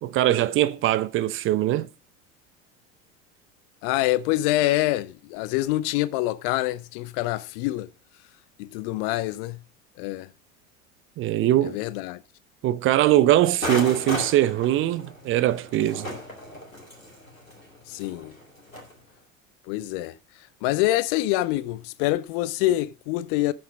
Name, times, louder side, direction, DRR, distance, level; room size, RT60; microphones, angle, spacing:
voice 1, 0.0-1.9 11.2-11.8 12.6-16.1, right 13 dB, 30° right, 0.7 m, -21 dB
voice 2, 3.8-7.9 8.6-9.6 10.0-10.3 11.6-12.2 17.9-18.3 19.7-20.2 20.6-23.5, left 16 dB, 45° left, 0.6 m, -26 dB
sound 1, 13.6-18.9, equal, 90° left, 2.5 m, -35 dB
8.8 x 7.3 x 5.0 m
figure-of-eight pair, 75°, 39 cm